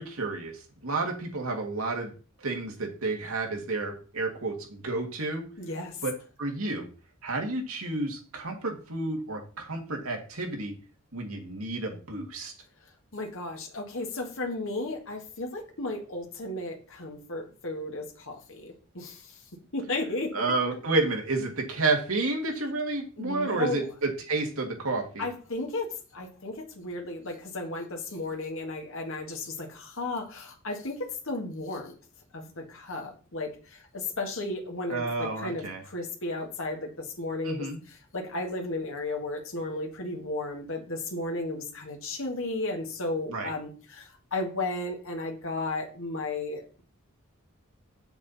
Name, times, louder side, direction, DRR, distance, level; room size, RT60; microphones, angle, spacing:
voice 1, 0.0-2.1 2.4-5.4 6.0-6.9 7.2-10.7 11.1-12.5 20.3-25.3 34.9-35.8 37.4-37.8 43.3-43.5, right 3 dB, 75° right, 2 dB, 2.0 m, -30 dB
voice 2, 5.6-6.0 13.1-19.4 19.7-20.4 23.2-23.8 25.2-31.9 32.3-46.8, left 2 dB, 65° left, 2 dB, 1.8 m, -34 dB
7.3 x 7.1 x 4.1 m, 0.37 s
head